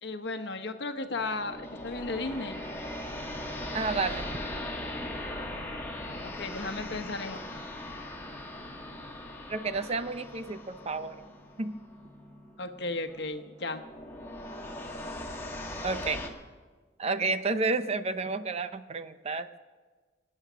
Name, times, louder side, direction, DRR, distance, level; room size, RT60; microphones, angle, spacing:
voice 1, 0.0-2.6 6.2-7.4 12.6-13.8, left 3 dB, 65° left, 7 dB, 1.1 m, -35 dB
sound 1, 1.1-16.3, left 1 dB, 15° left, 1.6 m, -40 dB
voice 2, 3.7-4.3 9.5-11.2 11.6-11.7 15.8-16.2 17.0-19.6, right 3 dB, 35° right, 11 dB, 0.6 m, -31 dB
24.0 x 8.7 x 6.2 m, 1.4 s
head